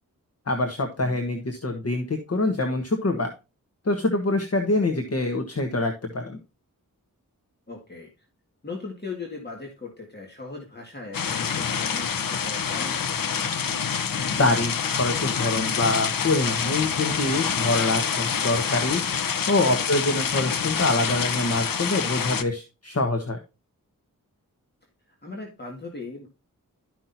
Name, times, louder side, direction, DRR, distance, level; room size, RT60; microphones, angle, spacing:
voice 1, 0.5-3.3 3.8-6.4 14.4-19.0 19.5-23.4, left 2 dB, 45° left, 5 dB, 1.3 m, -25 dB
voice 2, 7.7-8.3 8.6-13.5 19.6-19.9 25.2-26.3, left 3 dB, 30° left, -1 dB, 2.0 m, -39 dB
sound 1, 11.1-22.4, left 7 dB, 75° left, 0.8 m, -27 dB
13.0 x 5.9 x 2.7 m, 0.29 s
wide cardioid pair, 95°, 34 cm